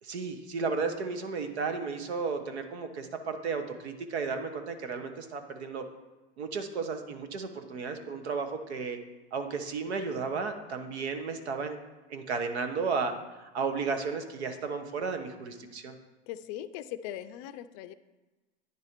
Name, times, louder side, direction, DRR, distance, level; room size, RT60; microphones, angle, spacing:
voice 1, 0.0-5.8 6.4-9.0 9.3-11.8 12.1-13.1 13.4-16.0, right 5 dB, 90° right, 8 dB, 1.1 m, -33 dB
voice 2, 16.3-17.9, left 12 dB, 45° left, 12 dB, 0.4 m, -40 dB
9.9 x 4.1 x 5.1 m, 1.2 s
supercardioid pair, 130°, 32 cm